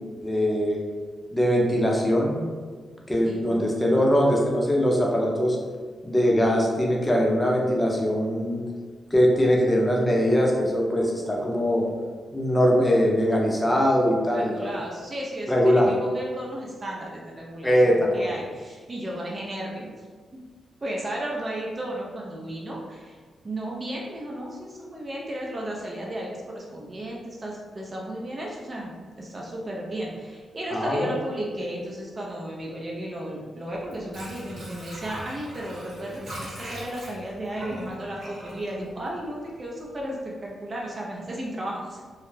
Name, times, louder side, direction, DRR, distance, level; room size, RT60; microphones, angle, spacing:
voice 1, 0.2-0.8 1.3-2.4 3.1-5.6 6.0-8.6 9.1-11.9 12.3-14.8 15.5-15.9 17.6-18.3 30.7-31.1, equal, 15° left, -2 dB, 0.6 m, -22 dB
voice 2, 3.2-3.6 14.3-19.9 20.8-23.2 23.4-28.9 29.2-42.1, right 1 dB, 35° right, -3 dB, 0.5 m, -34 dB
Water / Sink (filling or washing), 33.7-39.6 40.0-40.1, equal, 60° right, 1.0 m, -40 dB
2.3 x 2.0 x 3.1 m, 1.5 s
cardioid pair, 70°, 0 cm